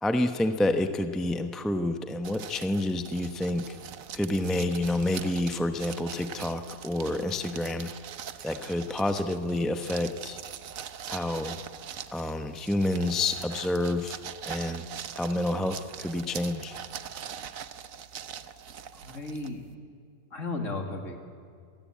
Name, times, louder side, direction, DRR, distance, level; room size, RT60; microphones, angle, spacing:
voice 1, 0.0-3.8 4.1-7.9 8.4-10.4 11.1-11.6 12.1-14.2 14.5-14.9 15.1-16.8, left 1 dB, ahead, 7 dB, 0.7 m, -28 dB
sound 1, 2.2-19.7, right 8 dB, 65° right, 1.2 m, -42 dB
voice 2, 19.0-19.7 20.3-21.2, left 3 dB, 55° left, 3 dB, 2.9 m, -34 dB
26.5 x 18.0 x 8.6 m, 2.3 s
omnidirectional pair, 1.6 m